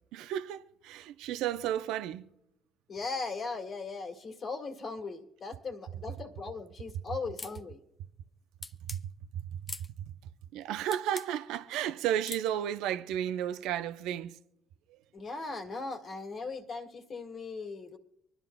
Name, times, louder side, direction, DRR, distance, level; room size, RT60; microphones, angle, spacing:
voice 1, 0.1-2.3 8.9-9.0 9.3-9.6 10.5-14.4 14.9-15.0, right 11 dB, 70° right, 0.6 m, -33 dB
voice 2, 2.9-7.8 15.1-18.0, left 4 dB, 50° left, 1.9 m, -38 dB
sound 1, 7.4-7.6 8.6-9.0 9.7-9.9 10.9-11.3 12.2-12.5, left 3 dB, 30° left, 0.7 m, -41 dB
25.0 x 11.0 x 2.3 m
hypercardioid pair, 55°, 0 cm